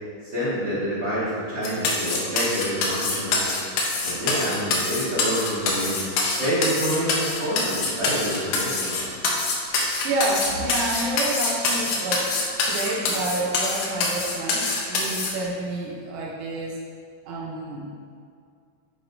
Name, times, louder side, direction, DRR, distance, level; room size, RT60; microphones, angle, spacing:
voice 1, 0.2-3.6 4.0-9.1, equal, 40° right, -12 dB, 2.2 m, -27 dB
sound 1, 1.6-15.3, left 3 dB, 80° left, 2.7 m, -25 dB
voice 2, 10.0-16.8 17.3-17.9, right 2 dB, 85° right, -3 dB, 2.6 m, -29 dB
10.0 x 4.3 x 3.9 m, 2.3 s
omnidirectional pair, 3.9 m